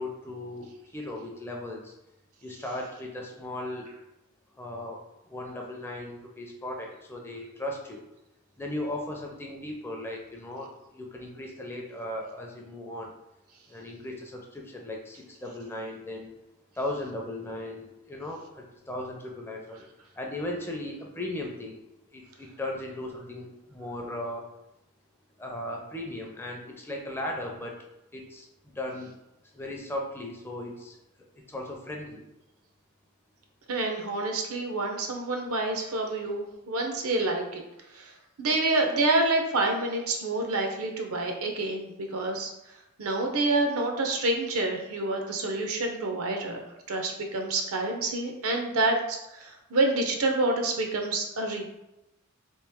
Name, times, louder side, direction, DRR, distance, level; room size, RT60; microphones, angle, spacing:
voice 1, 0.0-1.9 2.4-3.9 4.6-8.0 8.6-13.1 13.7-16.3 16.8-19.9 20.2-21.8 22.1-24.4 25.4-27.7 28.1-29.1 29.5-32.2, left 1 dB, 10° left, 0 dB, 0.4 m, -37 dB
voice 2, 33.7-37.6 37.9-38.1 38.4-42.5 43.0-51.6, right 2 dB, 85° right, 3 dB, 0.6 m, -28 dB
3.0 x 2.8 x 3.5 m, 0.90 s
head